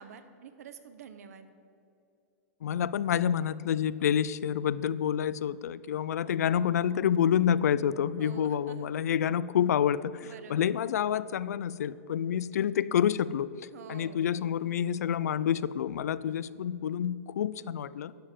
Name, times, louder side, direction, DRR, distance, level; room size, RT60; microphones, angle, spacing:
voice 1, 0.0-1.5 8.2-8.9 10.2-10.7 13.7-14.2, right 7 dB, 70° right, 10 dB, 1.0 m, -47 dB
voice 2, 2.6-10.1 10.5-13.5 13.9-18.1, left 9 dB, 80° left, 18 dB, 0.4 m, -28 dB
11.5 x 5.4 x 7.4 m, 2.7 s
hypercardioid pair, 140°, 9 cm